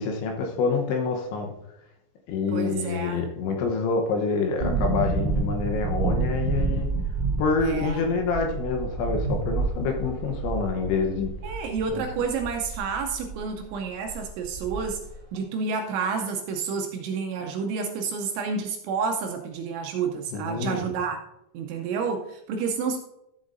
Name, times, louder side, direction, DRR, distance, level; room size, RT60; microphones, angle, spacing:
voice 1, 0.0-1.5 2.3-6.9 7.4-11.3 11.9-12.0 20.3-20.8, left 4 dB, 75° left, 3 dB, 3.1 m, -27 dB
voice 2, 2.5-3.3 7.6-8.0 11.4-15.0 15.3-21.2 21.5-23.0, right 5 dB, 80° right, 4 dB, 2.8 m, -29 dB
sound 1, 4.6-13.4 13.7-13.8 14.1-15.1 15.3-15.4, right 3 dB, 25° right, 3.3 m, -29 dB
14.0 x 7.7 x 2.6 m, 0.86 s
omnidirectional pair, 5.9 m